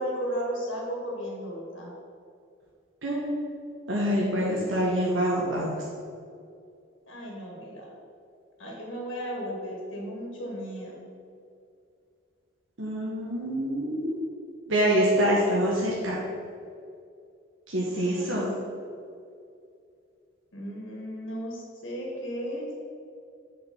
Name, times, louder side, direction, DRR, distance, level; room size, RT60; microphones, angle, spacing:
voice 1, 0.0-1.9 7.1-7.9 8.6-11.0 17.9-18.4 20.5-22.7, equal, 80° left, -3 dB, 2.1 m, -35 dB
voice 2, 3.0-3.5 3.9-5.8 12.8-14.2 14.7-16.2 17.7-18.5, equal, 85° right, -5 dB, 1.4 m, -26 dB
6.7 x 5.7 x 7.2 m, 2.4 s
head